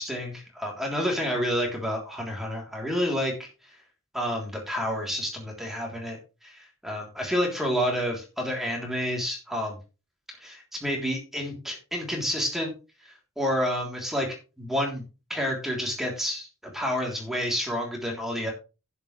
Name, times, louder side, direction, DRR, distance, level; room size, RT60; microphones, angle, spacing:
voice 1, 0.0-3.3 4.1-9.8 10.4-12.7 13.4-14.3 14.6-15.0 15.3-16.5 16.7-18.5, equal, ahead, -1 dB, 3.3 m, -29 dB
11.0 x 9.6 x 3.3 m, 0.31 s
head